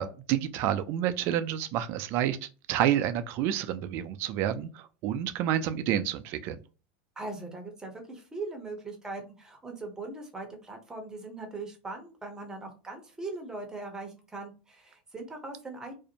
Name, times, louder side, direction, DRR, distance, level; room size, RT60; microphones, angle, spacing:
voice 1, 0.0-6.6, right 11 dB, 50° right, 0.3 m, -29 dB
voice 2, 7.2-15.9, right 3 dB, 10° right, 0.7 m, -40 dB
2.5 x 2.1 x 2.7 m
supercardioid pair, 130°, 5 cm